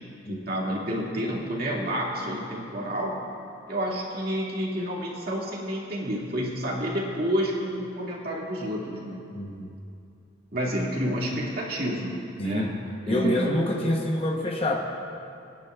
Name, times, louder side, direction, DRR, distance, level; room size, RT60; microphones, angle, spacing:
voice 1, 0.3-3.2 3.7-9.2 10.5-12.8 13.1-13.9, equal, 50° right, -4 dB, 2.1 m, -29 dB
voice 2, 9.3-9.7 12.4-12.7 13.1-14.8, left 1 dB, 30° left, 1 dB, 0.9 m, -26 dB
24.5 x 10.0 x 2.4 m, 2.6 s
head